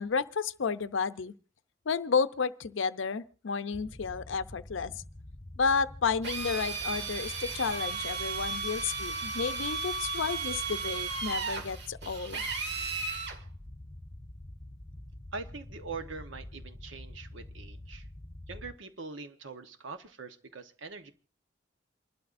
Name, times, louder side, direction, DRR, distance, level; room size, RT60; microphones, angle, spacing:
voice 1, 0.0-1.3 1.9-5.0 5.6-12.5, left 5 dB, 80° left, 0.6 m, -31 dB
sound 1, 3.7-18.8, left 1 dB, 20° left, 0.7 m, -46 dB
Drill, 6.2-13.4, right 4 dB, 60° right, 2.1 m, -35 dB
voice 2, 15.3-18.1 18.5-21.1, right 4 dB, 80° right, 1.1 m, -43 dB
28.5 x 12.0 x 2.5 m
head